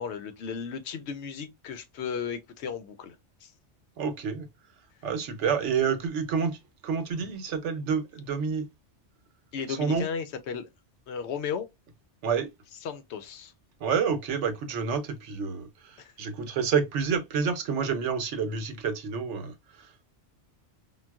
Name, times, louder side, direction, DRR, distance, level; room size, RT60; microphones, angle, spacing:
voice 1, 0.0-3.5 9.5-10.7 11.1-11.7 12.7-13.5 16.0-16.1, left 6 dB, 70° left, 0.8 m, -35 dB
voice 2, 4.0-4.5 5.0-6.6 6.8-8.7 9.8-10.0 12.2-12.5 13.8-20.1, right 6 dB, 75° right, 1.0 m, -29 dB
3.8 x 2.3 x 2.2 m
omnidirectional pair, 1.2 m